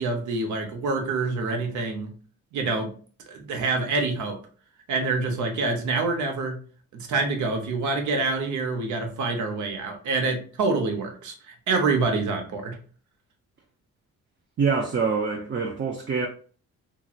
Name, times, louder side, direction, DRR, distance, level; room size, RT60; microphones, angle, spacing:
voice 1, 0.0-2.1 2.5-2.9 3.3-4.4 4.9-6.6 6.9-12.8, right 3 dB, 75° right, 0.9 m, -26 dB
voice 2, 14.6-16.3, right 5 dB, 35° right, 0.5 m, -25 dB
2.9 x 2.9 x 2.4 m
cardioid pair, 90°, 30 cm